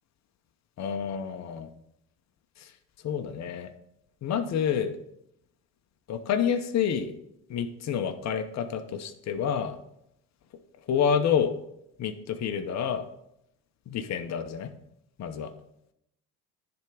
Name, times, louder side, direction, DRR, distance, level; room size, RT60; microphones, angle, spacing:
voice 1, 0.8-1.7 2.6-2.7 3.0-3.7 4.2-5.0 6.1-7.1 7.5-9.8 10.9-11.6 12.0-13.1 13.9-14.7 15.2-15.5, left 7 dB, 45° left, 7 dB, 0.8 m, -28 dB
10.5 x 3.5 x 4.9 m, 0.79 s
supercardioid pair, 80°, 37 cm